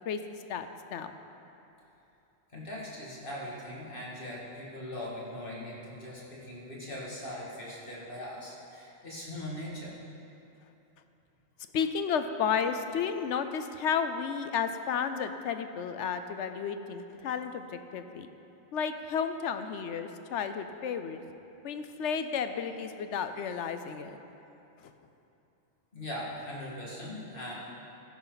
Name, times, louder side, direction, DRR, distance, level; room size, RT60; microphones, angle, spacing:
voice 1, 0.5-1.1 11.7-18.3 18.7-21.2 21.6-24.2 24.8-24.9, left 7 dB, 65° left, 9 dB, 0.9 m, -32 dB
voice 2, 2.5-10.0 25.9-27.5, left 1 dB, 40° left, -6 dB, 2.5 m, -40 dB
14.0 x 11.0 x 4.0 m, 2.9 s
omnidirectional pair, 1.3 m